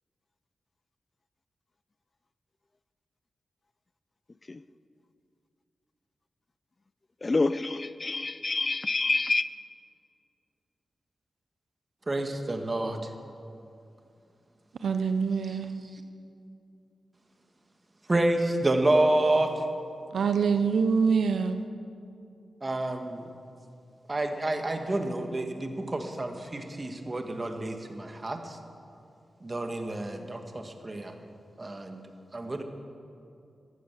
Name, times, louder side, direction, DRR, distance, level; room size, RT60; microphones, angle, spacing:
voice 1, 7.2-9.4, left 3 dB, 40° left, 15 dB, 0.5 m, -27 dB
voice 2, 12.1-13.0 18.1-19.5 22.6-23.2 24.1-28.4 29.4-31.1 31.6-32.0 32.3-32.6, right 1 dB, 35° right, 5 dB, 1.7 m, -28 dB
voice 3, 14.8-15.7 20.1-21.7, right 5 dB, 80° right, 9 dB, 0.7 m, -25 dB
14.5 x 10.5 x 7.5 m, 2.6 s
cardioid pair, 50°, 0 cm